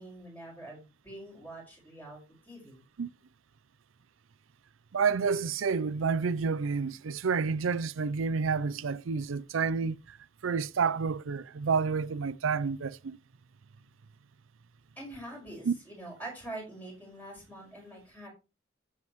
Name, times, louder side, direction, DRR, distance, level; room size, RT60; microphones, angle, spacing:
voice 1, 0.0-2.8 15.0-18.3, right 1 dB, 10° left, 5.3 m, -45 dB
voice 2, 4.9-10.2 10.4-13.2 15.7-15.8, right 5 dB, 85° right, 0.5 m, -29 dB
14.5 x 7.5 x 3.1 m
head